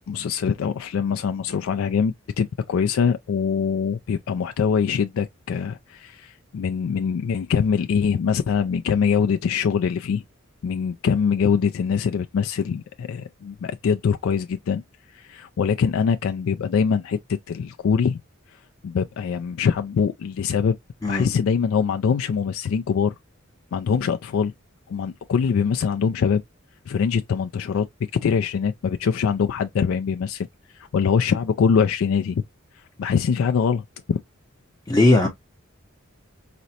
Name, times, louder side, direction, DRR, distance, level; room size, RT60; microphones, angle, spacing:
voice 1, 0.1-10.2 10.6-14.8 15.1-17.2 17.5-18.2 18.8-20.8 21.1-23.1 23.7-24.5 24.9-26.4 26.9-27.9 28.2-30.5 30.7-32.4 33.0-33.8 34.1-34.2, left 6 dB, 80° left, 0.3 m, -23 dB
voice 2, 34.9-35.3, left 2 dB, 20° left, 0.6 m, -17 dB
5.0 x 2.1 x 2.7 m
head